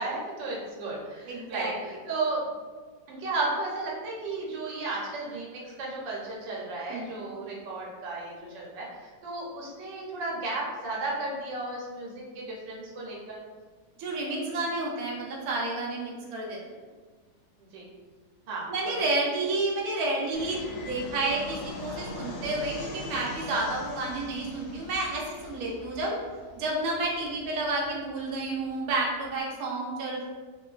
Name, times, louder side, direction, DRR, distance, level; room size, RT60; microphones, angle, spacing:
voice 1, 0.0-2.4 3.1-13.4 17.7-17.9 18.5-19.0, right 2 dB, 85° right, -4 dB, 1.4 m, -34 dB
voice 2, 1.3-1.7 6.9-7.3 14.0-16.6 18.7-26.2 26.6-30.3, right 2 dB, 70° right, -2 dB, 1.0 m, -30 dB
Fixed-wing aircraft airplane, 20.3-29.4, left 2 dB, 75° left, 1.0 m, -42 dB
2.9 x 2.5 x 2.3 m, 1.4 s
omnidirectional pair, 1.9 m